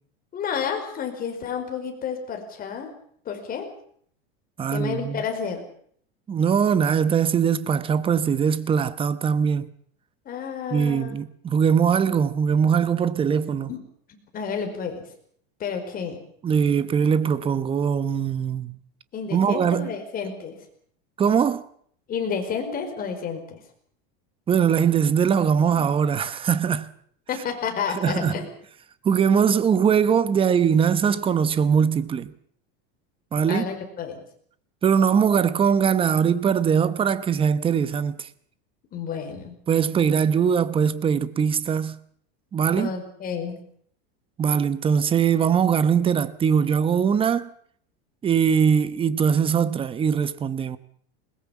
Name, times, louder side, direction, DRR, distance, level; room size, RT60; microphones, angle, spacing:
voice 1, 0.3-2.9 3.2-3.7 4.7-5.6 10.2-11.2 13.7-13.8 14.1-15.0 15.6-16.2 19.1-20.6 22.1-23.6 25.8-25.9 27.3-28.4 33.5-34.2 38.9-39.6 42.7-43.6, left 6 dB, 25° left, 4.8 m, -30 dB
voice 2, 4.6-5.2 6.3-9.7 10.7-13.7 16.4-18.7 19.3-19.9 21.2-21.6 24.5-26.9 27.9-28.3 29.0-32.3 33.3-33.7 34.8-38.3 39.7-42.0 42.5-42.9 44.4-47.5 48.2-50.8, right 7 dB, 15° right, 0.9 m, -21 dB
21.0 x 20.5 x 7.2 m
supercardioid pair, 155°, 32 cm